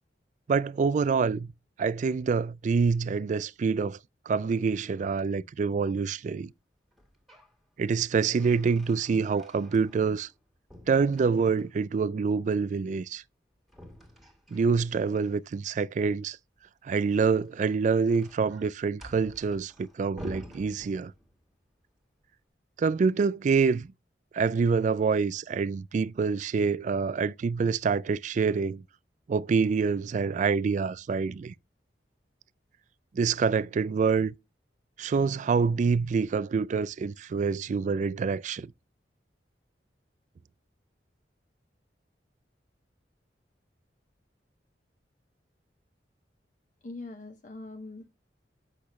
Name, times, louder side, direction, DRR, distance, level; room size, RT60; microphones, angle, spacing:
voice 1, 0.5-1.5 1.8-4.0 4.3-6.5 7.8-10.3 10.9-13.2 14.5-16.4 16.8-21.1 22.8-23.9 24.3-28.8 29.3-31.5 33.1-34.3 35.0-38.7, right 5 dB, 45° right, 0.3 m, -26 dB
sound 1, 6.9-7.6 7.9-10.4 10.7-11.9 13.7-15.3 17.3-21.5, left 1 dB, ahead, 1.8 m, -50 dB
voice 2, 46.8-48.1, left 2 dB, 45° left, 0.7 m, -42 dB
8.3 x 5.8 x 3.1 m
head